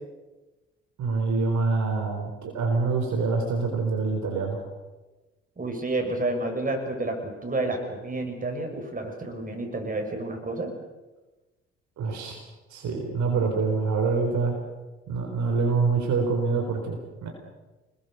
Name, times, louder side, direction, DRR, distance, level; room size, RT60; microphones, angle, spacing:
voice 1, 1.0-4.6 12.0-12.4 12.7-14.5 15.1-17.3, right 4 dB, 55° right, 2 dB, 4.3 m, -26 dB
voice 2, 5.6-10.7, right 2 dB, 25° right, 3 dB, 6.6 m, -30 dB
27.0 x 21.0 x 6.8 m, 1.1 s
figure-of-eight pair, 45°, 33 cm